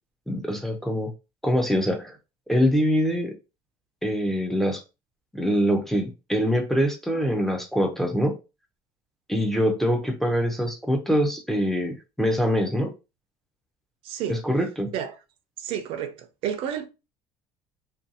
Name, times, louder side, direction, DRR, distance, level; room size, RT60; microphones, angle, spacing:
voice 1, 0.3-1.1 1.4-2.2 2.5-3.3 4.0-4.8 5.3-8.3 9.3-12.9 14.3-14.9, equal, 5° left, 0.4 m, -24 dB
voice 2, 14.0-14.4 14.9-15.2 15.6-16.9, right 9 dB, 60° right, 0.4 m, -31 dB
2.6 x 2.2 x 2.6 m
cardioid pair, 145°, 11 cm